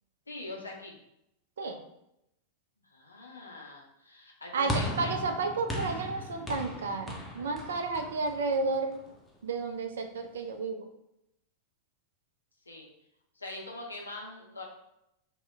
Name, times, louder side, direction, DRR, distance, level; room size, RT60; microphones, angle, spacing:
voice 1, 0.3-0.9 2.9-5.1 7.9-8.1 12.7-12.9 13.4-14.6, left 2 dB, 80° left, -1 dB, 0.6 m, -43 dB
voice 2, 4.5-9.0 9.4-10.9, right 3 dB, 65° right, 5 dB, 0.4 m, -32 dB
sound 1, 4.7-9.1, left 1 dB, 10° left, 0.6 m, -37 dB
2.8 x 2.1 x 3.4 m, 0.82 s
figure-of-eight pair, 90°, 0 cm